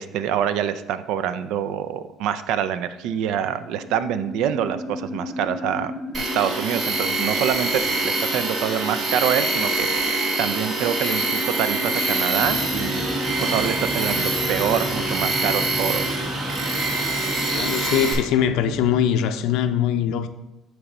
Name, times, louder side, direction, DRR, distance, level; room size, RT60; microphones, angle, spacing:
voice 1, 0.0-16.1, right 9 dB, 75° right, 0.4 m, -26 dB
sound 1, 3.0-19.3, equal, 5° left, 1.1 m, -37 dB
Tools, 6.1-18.1, right 2 dB, 50° right, 1.7 m, -25 dB
sound 2, 12.4-19.0, left 1 dB, 20° left, 0.5 m, -34 dB
voice 2, 17.5-20.3, left 9 dB, 75° left, 0.5 m, -22 dB
8.1 x 3.1 x 4.9 m
cardioid pair, 105°, 0 cm